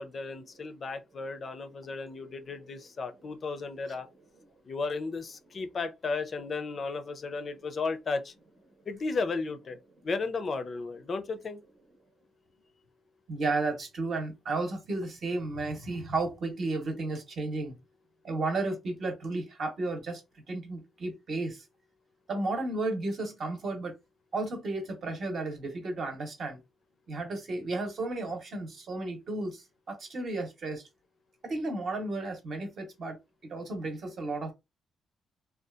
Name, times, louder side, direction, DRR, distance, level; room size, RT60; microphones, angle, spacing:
voice 1, 0.0-4.1 4.6-8.3 8.9-9.8 10.0-11.6, left 4 dB, 35° left, 0.4 m, -34 dB
voice 2, 13.3-17.7 18.2-20.2 20.5-21.6 22.3-23.9 24.3-26.6 27.1-30.8 31.4-33.2 33.4-34.5, right 2 dB, 50° right, 0.8 m, -33 dB
2.7 x 2.2 x 2.3 m
cardioid pair, 150°, 0 cm